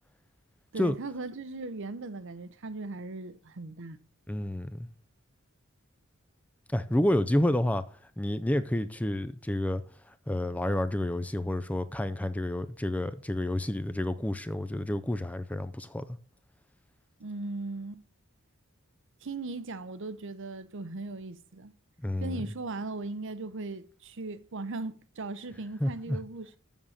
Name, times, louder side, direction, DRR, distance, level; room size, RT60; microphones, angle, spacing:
voice 1, 0.7-4.0 17.2-18.0 19.2-21.7 22.2-26.6, right 3 dB, 60° right, 0.7 m, -38 dB
voice 2, 4.3-4.9 6.7-7.8 8.2-9.8 10.3-16.2 22.0-22.4 25.8-26.2, left 1 dB, 5° left, 0.4 m, -29 dB
7.3 x 7.2 x 6.5 m
head